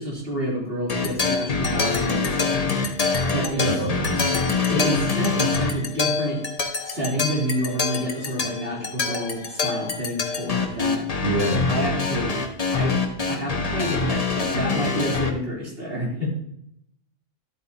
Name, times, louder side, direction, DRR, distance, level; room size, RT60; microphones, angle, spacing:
voice 1, 0.0-3.7 4.1-4.4 4.7-6.4 6.8-11.0 11.7-12.4 12.7-13.0 13.3-16.3, equal, 50° right, -4 dB, 3.7 m, -28 dB
sound 1, 0.9-15.3, left 4 dB, 35° left, 0.9 m, -25 dB
voice 2, 3.6-4.1 11.2-11.7, right 1 dB, 65° right, -5 dB, 3.9 m, -25 dB
11.5 x 8.2 x 2.9 m, 0.75 s
omnidirectional pair, 1.3 m